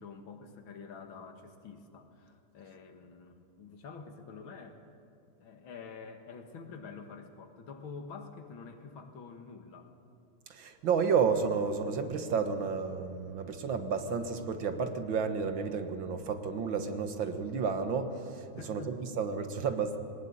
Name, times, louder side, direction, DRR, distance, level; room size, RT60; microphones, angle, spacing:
voice 1, 0.0-4.8 5.4-9.9 18.6-19.0, left 5 dB, 80° left, 6 dB, 2.4 m, -47 dB
voice 2, 10.5-20.0, right 5 dB, 75° right, 8 dB, 2.1 m, -31 dB
21.0 x 18.5 x 8.6 m, 2.6 s
omnidirectional pair, 2.2 m